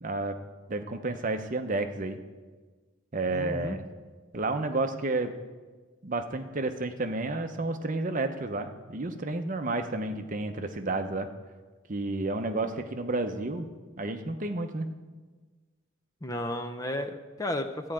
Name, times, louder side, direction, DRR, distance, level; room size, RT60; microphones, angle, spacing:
voice 1, 0.0-0.4 0.7-2.2 3.1-3.8 4.3-5.3 6.0-11.3 11.9-13.7 14.0-14.9, right 2 dB, 40° right, 7 dB, 0.7 m, -31 dB
voice 2, 3.3-3.8 16.2-17.9, left 1 dB, 15° left, 7 dB, 0.5 m, -33 dB
13.0 x 4.7 x 8.8 m, 1.4 s
head